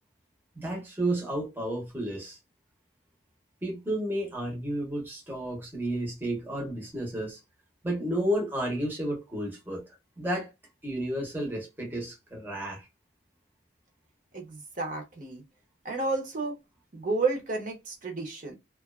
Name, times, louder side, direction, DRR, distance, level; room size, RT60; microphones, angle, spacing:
voice 1, 0.6-2.4 3.6-7.4 7.8-9.8 10.2-10.5 10.8-12.9, right 1 dB, 10° right, 0.7 m, -32 dB
voice 2, 14.3-15.4 15.8-16.5 16.9-18.5, right 3 dB, 45° right, 0.7 m, -31 dB
2.4 x 2.3 x 2.3 m
head